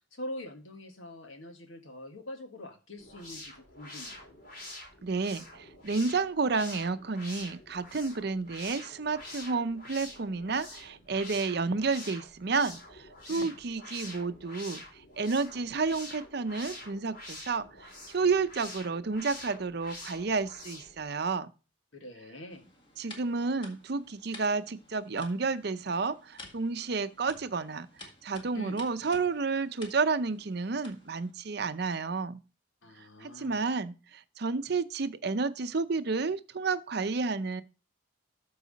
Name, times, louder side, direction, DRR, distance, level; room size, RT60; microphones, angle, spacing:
voice 1, 0.1-4.2 13.3-13.6 21.9-22.7 28.5-28.8 32.8-33.6, left 1 dB, 85° left, 1.7 m, -44 dB
sound 1, 3.0-21.0, left 2 dB, 50° left, 4.2 m, -46 dB
voice 2, 5.0-21.5 23.0-32.4 33.2-37.6, right 4 dB, 55° right, 0.6 m, -31 dB
sound 2, 22.5-31.3, left 2 dB, 25° left, 1.8 m, -52 dB
13.5 x 4.8 x 4.0 m
head